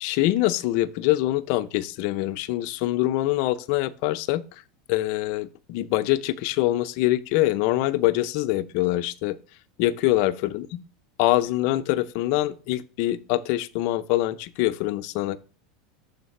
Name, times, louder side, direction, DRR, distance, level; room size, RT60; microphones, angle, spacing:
voice 1, 0.0-4.4 4.9-9.4 9.8-10.7 11.2-15.4, left 16 dB, 60° left, 0.5 m, -24 dB
6.4 x 3.9 x 5.2 m
supercardioid pair, 125°, 3 cm